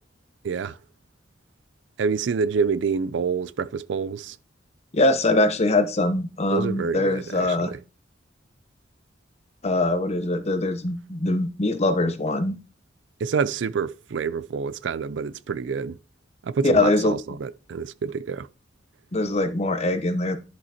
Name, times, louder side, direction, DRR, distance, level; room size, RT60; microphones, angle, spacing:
voice 1, 0.4-0.8 2.0-4.4 6.5-7.8 13.2-16.0 16.4-18.5, right 5 dB, 70° right, 0.4 m, -27 dB
voice 2, 4.9-7.7 9.6-12.6 16.6-17.1 19.1-20.4, left 2 dB, 35° left, 0.8 m, -22 dB
11.0 x 5.9 x 2.8 m
head